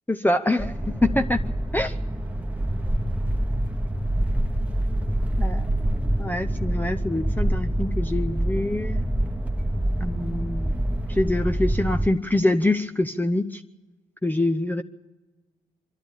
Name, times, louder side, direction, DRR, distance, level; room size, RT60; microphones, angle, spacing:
voice 1, 0.2-1.4 1.7-2.0 5.4-5.7 6.2-9.0 10.0-10.7 11.1-13.6 14.2-14.8, left 1 dB, 10° left, 6 dB, 0.7 m, -25 dB
sound 1, 0.6-12.1, right 1 dB, 10° right, 1.3 m, -26 dB
24.0 x 12.5 x 8.8 m, 1.3 s
hypercardioid pair, 40°, 18 cm